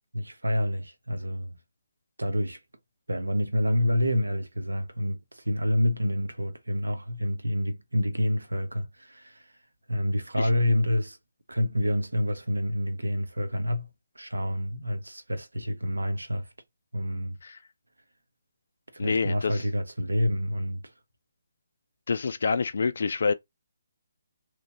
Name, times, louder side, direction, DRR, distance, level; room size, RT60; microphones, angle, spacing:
voice 1, 0.1-1.6 2.2-2.6 3.1-9.4 9.9-11.2 11.5-13.9 14.2-16.5 16.9-17.4 18.9-20.8, left 1 dB, 80° right, 0.7 m, -28 dB
voice 2, 19.0-19.6 22.1-23.3, left 4 dB, 55° left, 0.3 m, -27 dB
2.9 x 2.5 x 2.8 m
figure-of-eight pair, 140°, 0 cm